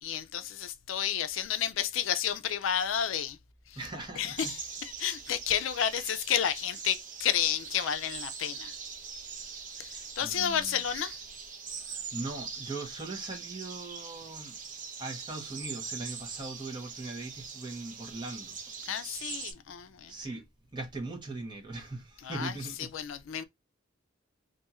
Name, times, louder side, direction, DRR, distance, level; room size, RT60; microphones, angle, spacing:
voice 1, 0.0-3.4 3.7-3.8 4.2-8.7 9.8-11.2 18.9-20.1 22.2-23.4, left 9 dB, 75° left, 0.4 m, -31 dB
voice 2, 3.7-4.5 5.9-6.1 10.2-10.8 11.8-14.5 15.0-18.6 20.1-20.4 20.7-22.9 23.4-23.5, right 2 dB, 25° right, 1.0 m, -40 dB
sound 1, 4.4-19.5, right 6 dB, 40° right, 0.6 m, -42 dB
2.6 x 2.4 x 4.1 m
head